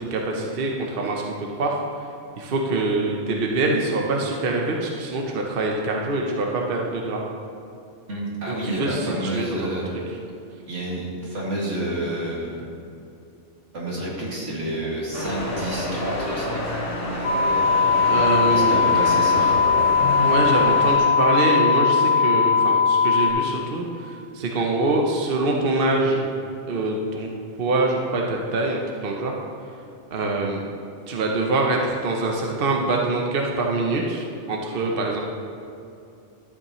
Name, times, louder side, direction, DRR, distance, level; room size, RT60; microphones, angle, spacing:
voice 1, 0.0-1.8 2.4-7.2 8.5-9.7 18.1-18.8 20.1-26.2 26.7-27.3 27.6-29.3 30.1-30.6 31.1-35.2, right 2 dB, 55° right, 0 dB, 1.0 m, -24 dB
voice 2, 8.1-9.9 10.7-12.6 13.7-16.6 18.5-19.6, right 1 dB, 85° right, -5 dB, 2.5 m, -29 dB
sound 1, 15.1-21.0, left 1 dB, 55° left, 2.3 m, -28 dB
sound 2, 17.2-23.3, left 5 dB, 75° left, 1.2 m, -19 dB
12.5 x 8.3 x 3.1 m, 2.7 s
omnidirectional pair, 1.2 m